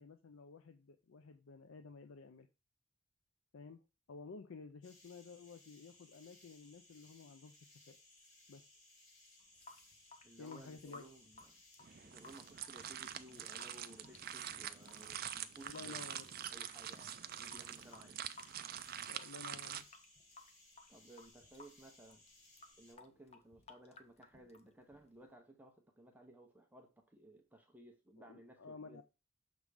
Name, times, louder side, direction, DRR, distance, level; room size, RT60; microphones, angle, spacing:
voice 1, 0.0-2.5 3.5-3.8 4.1-7.6 7.9-8.0 8.5-8.6 10.4-11.0 15.6-16.3 19.1-19.9 28.3-29.0, left 4 dB, 80° left, 9 dB, 0.5 m, -53 dB
sound 1, 4.8-22.9, left 2 dB, 60° left, 4.0 m, -64 dB
Water tap faucet / Sink (filling or washing) / Drip, 9.4-25.3, left 3 dB, 30° left, 0.7 m, -60 dB
voice 2, 10.2-11.6 12.0-16.1 16.5-18.2 20.9-22.2 22.8-29.0, right 1 dB, 10° right, 3 dB, 0.8 m, -59 dB
sound 2, 11.8-19.8, right 10 dB, 45° right, 0.4 m, -46 dB
6.5 x 3.5 x 4.8 m, 0.27 s
head